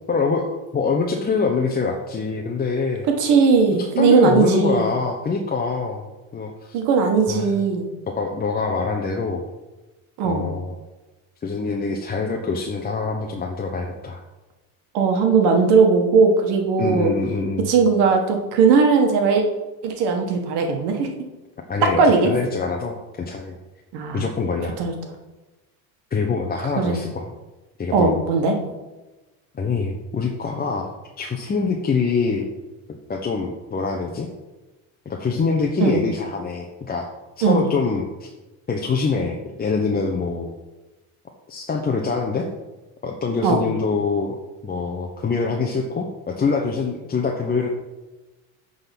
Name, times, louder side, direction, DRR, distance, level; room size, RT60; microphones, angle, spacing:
voice 1, 0.1-0.5 0.7-3.1 3.8-6.8 7.3-7.6 8.1-9.4 10.2-10.7 11.4-14.2 16.8-17.7 21.7-23.5 24.1-24.8 26.1-27.3 27.8-28.2 29.5-32.5 33.1-34.3 35.1-37.1 37.4-38.3 38.7-40.5 41.5-42.5 43.0-44.4 44.6-47.7, left 4 dB, 20° left, 1 dB, 0.9 m, -24 dB
voice 2, 3.2-4.9 6.7-7.9 10.2-10.4 14.9-17.1 17.7-19.4 19.8-21.1 21.8-22.3 23.9-24.2 24.8-24.9 26.8-27.0 27.9-28.5 35.8-36.0 37.4-37.6 43.4-43.6, right 5 dB, 70° right, 3 dB, 1.7 m, -18 dB
8.7 x 4.0 x 5.9 m, 1.1 s
supercardioid pair, 110°, 42 cm